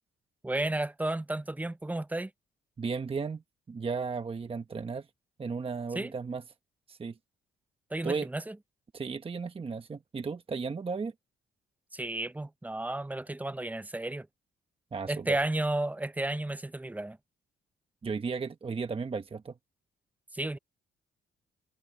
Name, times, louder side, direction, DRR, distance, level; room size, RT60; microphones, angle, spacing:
voice 1, 0.4-2.3 5.9-6.1 7.9-8.6 11.9-14.3 15.1-17.2 20.3-20.6, right 2 dB, 10° right, 0.6 m, -32 dB
voice 2, 2.8-3.4 3.7-5.1 5.4-6.4 6.9-7.2 8.0-8.3 8.9-11.1 14.9-15.4 18.0-19.5, right 5 dB, 30° right, 1.0 m, -34 dB
cardioid pair, 90°, 20 cm